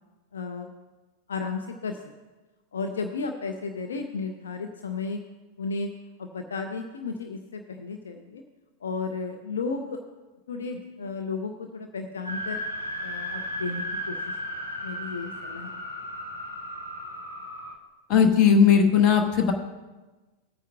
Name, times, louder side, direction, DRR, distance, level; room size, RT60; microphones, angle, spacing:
voice 1, 0.3-0.7 1.3-2.0 2.7-5.2 5.6-5.9 6.2-8.4 8.8-10.0 10.5-12.6 13.0-14.4 14.8-15.8, left 4 dB, 70° left, 5 dB, 0.7 m, -33 dB
sound 1, 12.2-17.7, equal, 90° left, 1.3 m, -35 dB
voice 2, 18.1-19.5, left 7 dB, 35° left, 5 dB, 1.3 m, -18 dB
18.0 x 9.1 x 2.3 m, 1.2 s
figure-of-eight pair, 90°, 0 cm